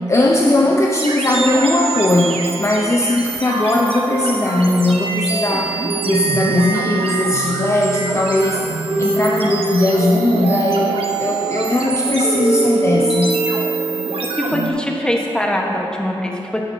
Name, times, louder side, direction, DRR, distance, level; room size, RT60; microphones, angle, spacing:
voice 1, 0.1-8.6 9.0-13.3, left 1 dB, 30° left, -1 dB, 0.6 m, -18 dB
sound 1, 0.9-14.7, right 3 dB, 70° right, 0.8 m, -23 dB
voice 2, 14.4-16.6, left 1 dB, 10° left, 0 dB, 1.1 m, -22 dB
10.0 x 7.4 x 2.7 m, 2.9 s
cardioid pair, 50°, 10 cm